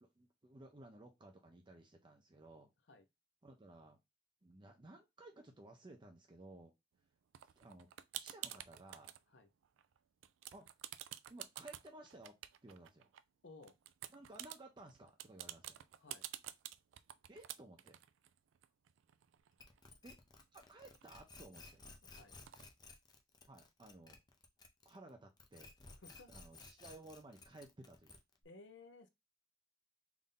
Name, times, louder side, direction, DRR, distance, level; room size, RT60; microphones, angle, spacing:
voice 1, 0.0-2.7 3.4-4.0 4.4-6.7 7.4-7.9 8.2-9.2 10.5-10.7 11.3-12.3 12.6-13.1 14.1-15.8 17.3-18.0 20.0-20.2 20.5-21.8 23.5-24.2 24.8-25.7 26.3-28.2, right 2 dB, 25° right, 0.6 m, -57 dB
sound 1, 7.3-9.2 9.6-10.0 10.2-13.2 13.6-19.8 20.1-20.2 20.4-21.9 22.5-22.6, right 13 dB, 85° right, 0.3 m, -50 dB
voice 2, 13.4-13.7 16.0-16.2 22.0-22.3 25.9-26.3 28.4-29.1, left 3 dB, 70° left, 0.7 m, -57 dB
sound 2, 19.6-25.1 25.4-28.4, left 3 dB, 20° left, 0.6 m, -57 dB
3.5 x 2.7 x 3.7 m
head